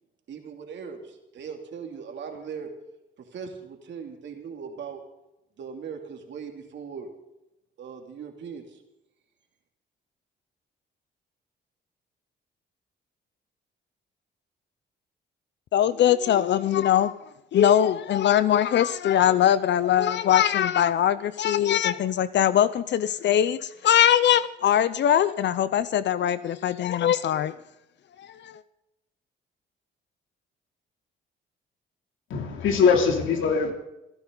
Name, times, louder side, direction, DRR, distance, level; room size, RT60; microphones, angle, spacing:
voice 1, 0.3-2.7 3.2-5.0 5.6-7.1 7.8-8.8, right 6 dB, 65° right, 3 dB, 2.9 m, -39 dB
voice 2, 15.7-17.1 17.5-27.5 28.2-28.6, left 10 dB, 65° left, 15 dB, 0.6 m, -22 dB
voice 3, 32.3-33.7, left 5 dB, 80° left, 3 dB, 3.0 m, -21 dB
28.5 x 11.0 x 4.0 m, 0.91 s
cardioid pair, 90°, 20 cm